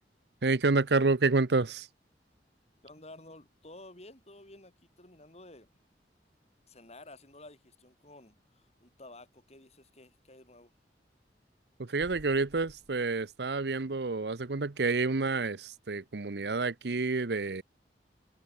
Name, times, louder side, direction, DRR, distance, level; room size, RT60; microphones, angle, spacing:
voice 1, 0.4-1.9 11.8-17.6, right 3 dB, 70° right, 0.8 m, -28 dB
voice 2, 2.8-5.7 6.7-10.7, left 2 dB, 40° left, 6.5 m, -52 dB
sound 1, 12.0-14.2, equal, 20° left, 6.5 m, -57 dB
head